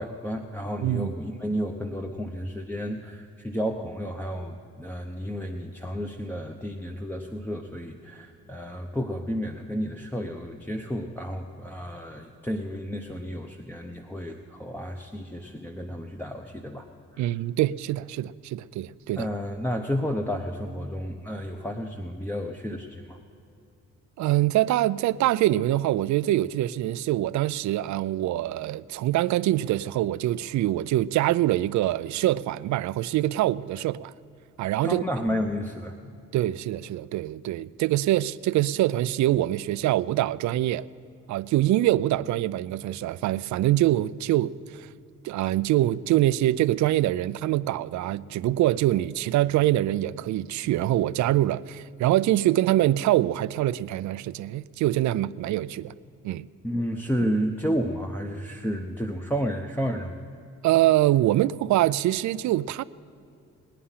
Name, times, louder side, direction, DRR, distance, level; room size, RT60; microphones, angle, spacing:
voice 1, 0.0-17.3 19.2-23.2 34.8-36.0 56.6-60.2, equal, 5° left, 0.8 m, -31 dB
voice 2, 17.2-19.2 24.2-34.1 34.6-35.0 36.3-40.8 41.3-44.9 45.2-55.9 56.2-56.5 60.6-62.8, right 14 dB, 70° right, 0.4 m, -24 dB
20.0 x 9.9 x 5.7 m
cardioid pair, 90°, 30 cm